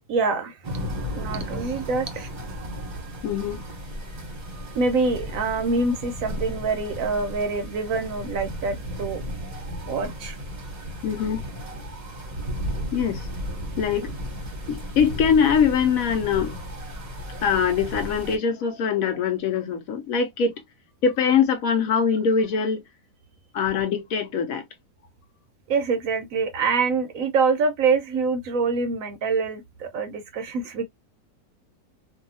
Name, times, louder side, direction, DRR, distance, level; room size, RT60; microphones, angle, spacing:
voice 1, 0.1-0.7 1.1-2.3 4.7-9.2 9.9-10.4 25.7-30.8, right 4 dB, 70° right, 0.8 m, -25 dB
sound 1, 0.6-18.4, equal, 35° right, 0.7 m, -34 dB
voice 2, 3.2-3.6 11.0-11.4 12.9-13.3 13.8-14.1 14.7-16.6 17.4-20.5 21.0-22.8 23.5-24.6, left 6 dB, 70° left, 0.9 m, -23 dB
2.6 x 2.4 x 2.6 m
omnidirectional pair, 1.7 m